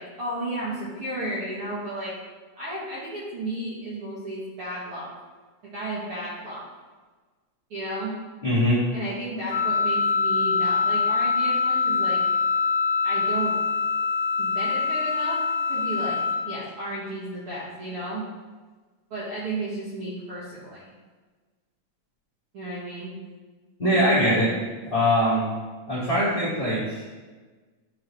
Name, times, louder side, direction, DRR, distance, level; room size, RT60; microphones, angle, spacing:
voice 1, 0.0-2.2 2.6-5.1 5.7-6.6 7.7-8.1 8.9-12.2 13.0-13.6 14.4-15.4 15.7-16.2 16.4-18.2 19.1-20.8 22.5-23.1, right 1 dB, 50° right, -10 dB, 1.9 m, -33 dB
voice 2, 8.4-8.8 23.8-24.5 24.8-25.4 25.9-27.0, equal, 20° left, -11 dB, 1.7 m, -22 dB
Wind instrument woodwind instrument, 9.5-16.4, left 5 dB, 85° left, 2.6 m, -24 dB
10.5 x 3.8 x 3.1 m, 1.3 s
omnidirectional pair, 3.8 m